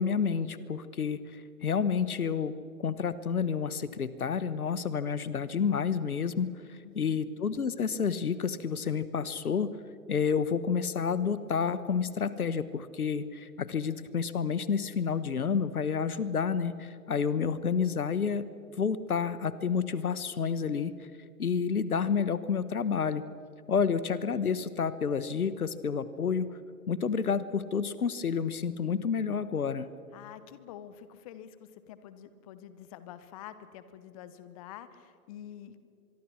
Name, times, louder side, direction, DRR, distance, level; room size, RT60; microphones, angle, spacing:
voice 1, 0.0-2.5 2.8-9.8 10.1-18.5 18.8-21.1 21.4-23.2 23.7-26.5 26.9-29.9, left 6 dB, 70° left, 15 dB, 1.3 m, -30 dB
voice 2, 6.8-7.2 30.1-35.8, left 10 dB, 25° left, 13 dB, 0.9 m, -47 dB
25.0 x 22.5 x 6.2 m, 2.4 s
figure-of-eight pair, 125°, 46 cm